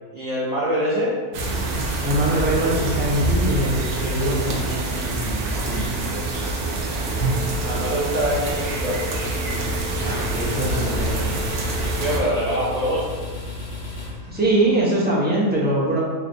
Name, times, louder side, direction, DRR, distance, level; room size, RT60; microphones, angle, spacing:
voice 1, 0.1-1.2 7.6-9.0 12.0-13.1, equal, 65° right, -6 dB, 0.4 m, -24 dB
sound 1, 1.3-12.2, right 2 dB, 85° right, 1.2 m, -25 dB
voice 2, 2.0-5.4 5.7-5.9 10.0-11.4 14.3-16.0, right 1 dB, 10° right, -6 dB, 0.7 m, -23 dB
sound 2, 7.0-13.0, left 5 dB, 10° left, 1.4 m, -38 dB
sound 3, 9.7-14.9, left 2 dB, 35° left, 0.8 m, -34 dB
5.6 x 2.6 x 2.7 m, 1.5 s
omnidirectional pair, 1.5 m